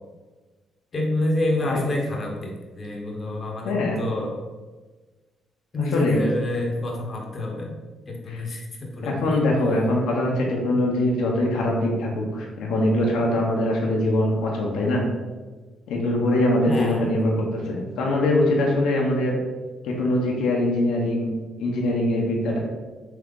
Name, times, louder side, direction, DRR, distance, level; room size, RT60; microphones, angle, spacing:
voice 1, 0.9-4.4 5.7-7.8 8.1-9.4 16.6-17.1, left 1 dB, 35° left, 0 dB, 0.9 m, -27 dB
voice 2, 3.6-4.0 5.8-6.2 8.3-8.4 9.0-15.0 15.9-19.4 19.8-21.3 21.6-22.6, left 1 dB, 85° left, -1 dB, 0.7 m, -23 dB
3.7 x 2.8 x 3.6 m, 1.3 s
cardioid pair, 90°, 0 cm